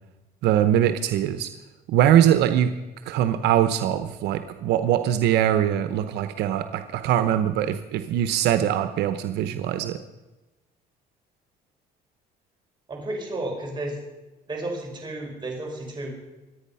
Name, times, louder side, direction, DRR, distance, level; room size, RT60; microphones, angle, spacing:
voice 1, 0.4-1.5 1.9-2.7 3.1-10.0, right 11 dB, 80° right, 10 dB, 0.9 m, -22 dB
voice 2, 12.9-14.0 14.5-16.1, right 2 dB, 25° right, 0 dB, 5.5 m, -32 dB
24.5 x 9.3 x 5.6 m, 1.1 s
cardioid pair, 110°, 17 cm